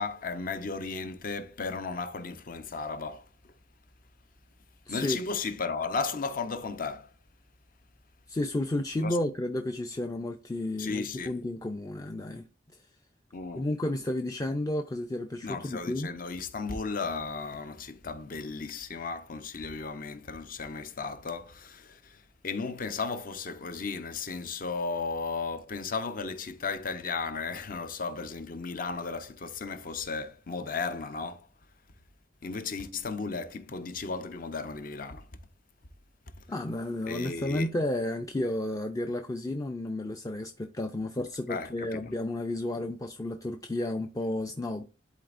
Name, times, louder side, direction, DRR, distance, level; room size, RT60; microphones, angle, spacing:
voice 1, 0.0-3.5 4.9-7.1 9.0-9.2 10.8-11.4 13.3-13.7 15.4-31.5 32.4-35.3 37.1-37.7 41.5-42.1, left 4 dB, 50° left, 0.7 m, -35 dB
voice 2, 4.9-5.2 8.3-12.5 12.7-12.8 13.6-16.1 36.5-44.8, left 1 dB, 20° left, 0.4 m, -32 dB
11.0 x 4.2 x 2.5 m
head